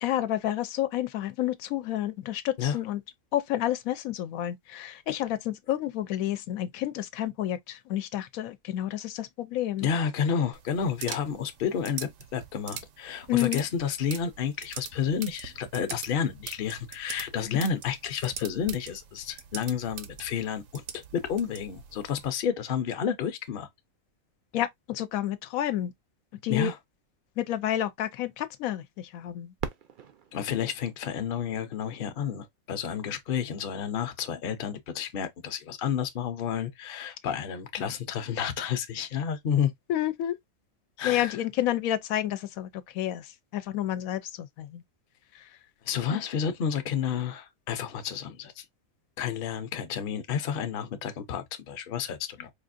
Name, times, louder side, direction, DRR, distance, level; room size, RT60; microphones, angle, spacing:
voice 1, 0.0-3.0 3.3-9.9 13.3-13.6 17.5-17.6 24.5-25.9 26.4-26.7 27.4-29.5 39.9-40.4 41.0-44.8 46.1-46.2, left 12 dB, 90° left, 1.0 m, -30 dB
voice 2, 9.8-23.7 26.5-26.8 30.3-39.7 41.0-41.4 45.8-48.6 49.2-52.5, left 7 dB, 50° left, 0.7 m, -30 dB
sound 1, 10.5-22.3, right 8 dB, 75° right, 1.0 m, -43 dB
Fireworks, 29.6-32.3 33.0-33.1 33.8-34.3 36.2-36.3, right 7 dB, 55° right, 0.5 m, -41 dB
4.7 x 2.5 x 2.5 m
omnidirectional pair, 1.4 m